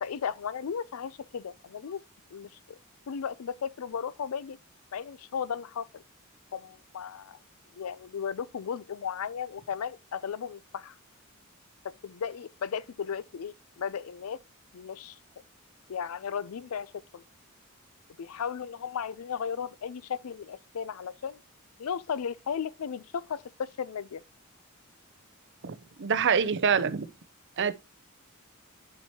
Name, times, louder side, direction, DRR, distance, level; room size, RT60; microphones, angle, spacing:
voice 1, 0.0-2.0 2.3-2.5 3.1-4.6 4.9-6.0 6.5-7.4 7.7-10.9 12.0-14.4 14.7-15.2 15.9-17.2 18.2-21.4 21.8-24.2, left 7 dB, 80° left, 0.4 m, -35 dB
voice 2, 25.6-27.1 27.6-27.7, right 6 dB, 60° right, 0.6 m, -26 dB
11.0 x 4.6 x 2.8 m
head